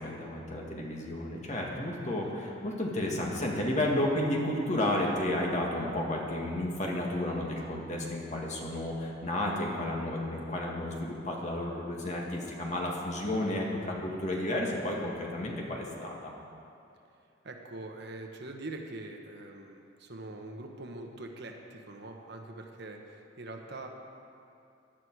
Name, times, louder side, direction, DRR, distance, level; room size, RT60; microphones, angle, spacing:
voice 1, 0.0-16.3, left 1 dB, 35° left, -2 dB, 2.0 m, -32 dB
voice 2, 17.4-23.9, right 2 dB, 55° right, 2 dB, 1.3 m, -43 dB
16.5 x 11.0 x 4.8 m, 2.6 s
head